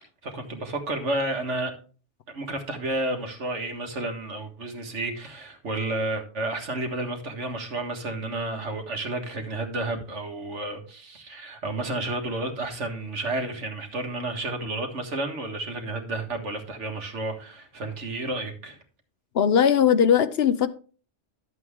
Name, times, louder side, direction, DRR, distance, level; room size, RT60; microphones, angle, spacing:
voice 1, 0.2-1.7 2.3-18.8, right 2 dB, 75° right, 2.0 m, -31 dB
voice 2, 19.3-20.7, left 8 dB, 65° left, 0.9 m, -19 dB
11.5 x 7.7 x 3.6 m
omnidirectional pair, 1.2 m